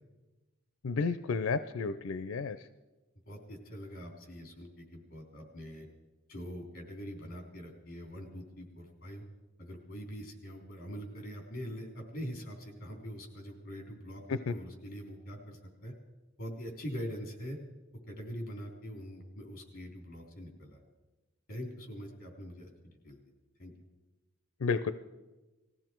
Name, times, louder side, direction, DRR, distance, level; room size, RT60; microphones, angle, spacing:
voice 1, 0.8-2.6 14.3-14.5 24.6-24.9, left 4 dB, 90° left, 12 dB, 0.5 m, -31 dB
voice 2, 3.2-5.9 6.3-9.2 9.6-15.9 16.4-17.6 18.1-20.8 21.5-23.2 23.6-23.7, equal, 45° left, 2 dB, 3.5 m, -43 dB
20.0 x 15.0 x 4.6 m, 1.1 s
head